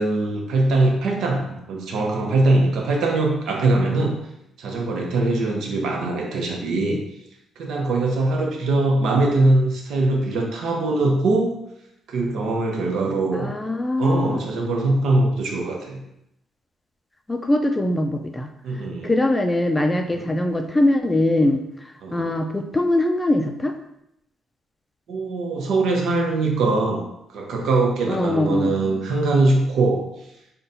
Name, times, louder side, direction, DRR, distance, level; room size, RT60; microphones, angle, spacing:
voice 1, 0.0-4.2 4.6-7.0 7.6-11.6 12.1-13.5 14.0-16.0 18.6-19.1 20.1-20.3 22.0-22.3 25.1-27.0 27.3-30.1, right 2 dB, 75° right, 1 dB, 0.8 m, -22 dB
voice 2, 13.3-14.4 17.3-18.5 19.0-23.7 28.1-28.7, left 1 dB, 15° left, 5 dB, 0.4 m, -22 dB
3.9 x 2.3 x 3.9 m, 0.80 s
cardioid pair, 90°, 0 cm